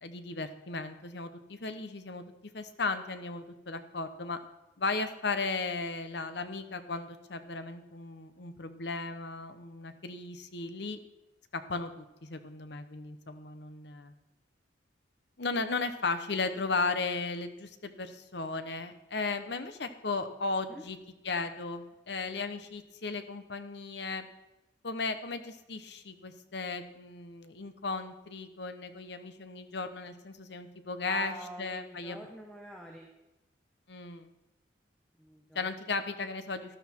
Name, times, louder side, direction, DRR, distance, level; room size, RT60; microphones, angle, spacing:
voice 1, 0.0-2.2 2.5-4.4 4.8-11.0 11.5-14.1 15.4-21.0 21.2-24.3 24.8-32.2 33.9-34.3 35.5-36.8, left 3 dB, 60° left, 9 dB, 1.0 m, -36 dB
voice 2, 31.1-33.1 35.2-35.7, right 1 dB, 5° left, 0 dB, 1.1 m, -45 dB
13.0 x 11.5 x 4.5 m, 1.0 s
head